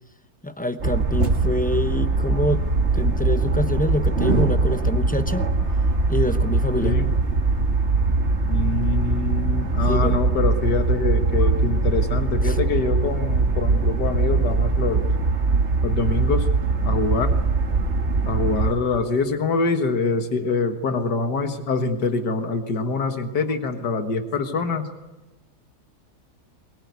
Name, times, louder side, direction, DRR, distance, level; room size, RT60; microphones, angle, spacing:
voice 1, 0.4-2.7 2.9-5.5 6.1-6.9 9.9-10.2 12.4-12.6, left 1 dB, 10° left, 9 dB, 0.6 m, -25 dB
sound 1, 0.8-18.7, right 3 dB, 45° right, 2.0 m, -21 dB
voice 2, 6.8-7.1 8.4-15.1 15.8-16.5 16.8-17.4 18.3-24.9, left 4 dB, 90° left, 7 dB, 2.2 m, -25 dB
22.5 x 21.0 x 9.5 m, 1.0 s
omnidirectional pair, 1.7 m